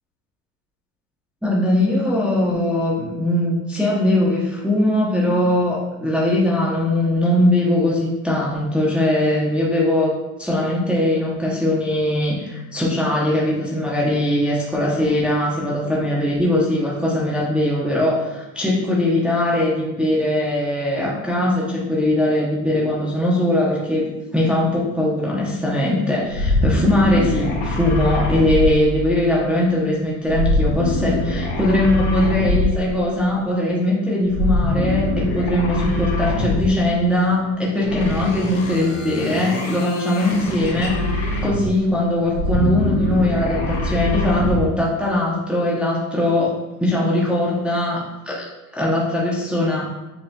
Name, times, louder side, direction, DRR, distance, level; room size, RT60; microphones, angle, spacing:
voice 1, 1.4-10.1 10.4-24.0 24.3-41.0 41.4-46.5 46.8-48.5 48.7-49.9, left 1 dB, ahead, -5 dB, 0.9 m, -20 dB
sound 1, 26.3-29.4 30.3-33.0 34.3-36.9 37.8-41.8 42.2-44.7, left 1 dB, 65° left, 1.4 m, -23 dB
6.8 x 3.0 x 2.3 m, 1.0 s
supercardioid pair, 100°, 49 cm